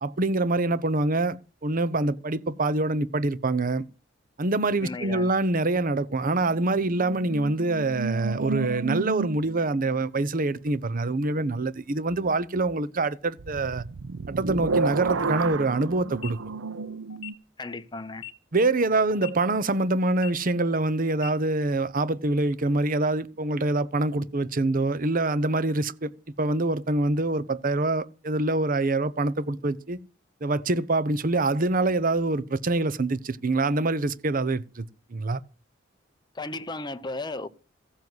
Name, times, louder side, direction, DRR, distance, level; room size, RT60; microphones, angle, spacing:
voice 1, 0.0-3.8 4.4-13.9 14.3-16.4 18.5-26.1 26.4-30.0 30.4-34.8 35.1-35.4, right 2 dB, 45° right, 0.8 m, -25 dB
voice 2, 4.8-5.3 17.6-18.2 36.3-37.5, left 2 dB, 25° left, 0.9 m, -35 dB
sound 1, 6.4-9.8 13.4-17.3, right 4 dB, 90° right, 0.6 m, -32 dB
sound 2, 16.1-16.3 17.1-17.3 18.1-18.3 19.1-19.3 20.1-20.3 21.1-21.3, left 13 dB, 85° left, 1.2 m, -40 dB
15.0 x 7.2 x 7.9 m
head